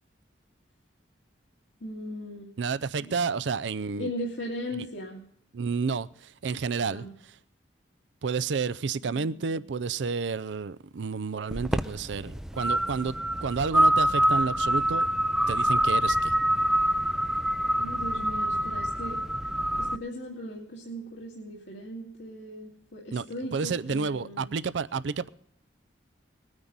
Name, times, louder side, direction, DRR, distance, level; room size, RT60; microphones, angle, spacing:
voice 1, 1.8-2.5 4.0-5.2 6.9-7.1 9.0-9.6 17.8-24.5, equal, 80° left, 2.3 m, -38 dB
voice 2, 2.6-4.1 5.5-7.1 8.2-13.1 13.4-15.1 15.5-16.4 23.1-23.3 23.5-25.3, right 5 dB, 75° right, 0.5 m, -30 dB
sound 1, 11.5-20.0, right 1 dB, 5° right, 0.4 m, -26 dB
21.0 x 9.6 x 4.0 m
head